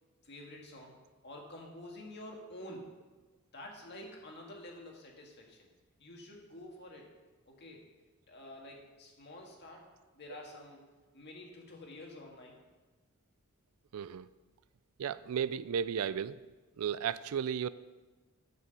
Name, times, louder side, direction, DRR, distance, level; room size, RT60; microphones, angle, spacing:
voice 1, 0.2-2.9 3.5-5.7 6.0-7.1 7.5-7.8 8.3-9.9 10.1-10.9 11.1-12.6, left 1 dB, 50° left, 0 dB, 1.9 m, -49 dB
voice 2, 13.9-14.3 15.0-16.4 16.8-17.7, right 8 dB, 75° right, 17 dB, 0.4 m, -34 dB
9.4 x 5.9 x 7.0 m, 1.3 s
head